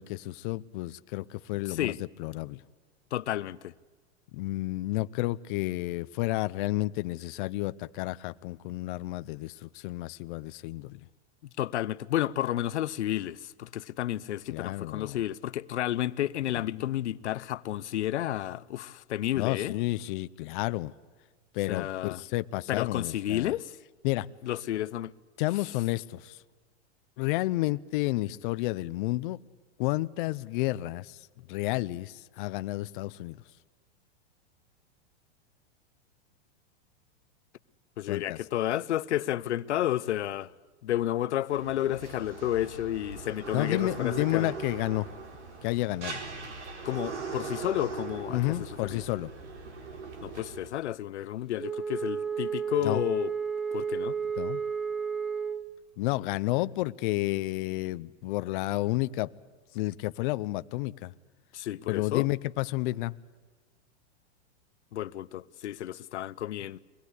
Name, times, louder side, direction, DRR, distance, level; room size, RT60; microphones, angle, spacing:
voice 1, 0.0-1.9 2.2-2.6 4.3-11.0 14.5-15.2 16.7-16.9 19.3-20.9 21.5-23.5 24.0-24.3 25.4-26.4 27.2-29.4 29.8-33.4 38.1-38.4 43.5-45.1 45.6-46.2 48.3-49.3 52.8-53.0 54.4-54.6 56.0-59.3 59.7-61.1 61.9-63.2, left 18 dB, 50° left, 0.7 m, -31 dB
voice 2, 1.6-2.0 3.1-3.7 11.6-19.7 21.7-22.2 22.7-23.8 24.4-25.1 38.0-40.5 40.8-44.5 46.8-49.0 50.2-53.3 53.7-54.2 61.5-62.3 64.9-66.8, left 13 dB, 90° left, 0.8 m, -31 dB
sound 1, 41.5-50.7, right 4 dB, 85° right, 4.4 m, -40 dB
Wind instrument woodwind instrument, 51.6-55.7, right 6 dB, ahead, 0.6 m, -32 dB
23.5 x 19.0 x 8.2 m
hypercardioid pair, 140°, 34 cm